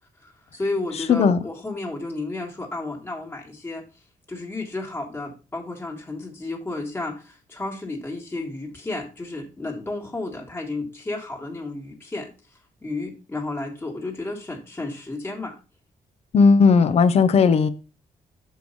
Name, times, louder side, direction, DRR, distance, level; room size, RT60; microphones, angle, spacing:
voice 1, 0.2-3.8 4.3-12.3 12.8-15.6, left 2 dB, 15° left, -1 dB, 1.7 m, -32 dB
voice 2, 1.1-1.4 16.3-17.7, left 5 dB, 45° left, 13 dB, 0.7 m, -16 dB
6.9 x 4.7 x 5.3 m, 0.32 s
wide cardioid pair, 180°, 15 cm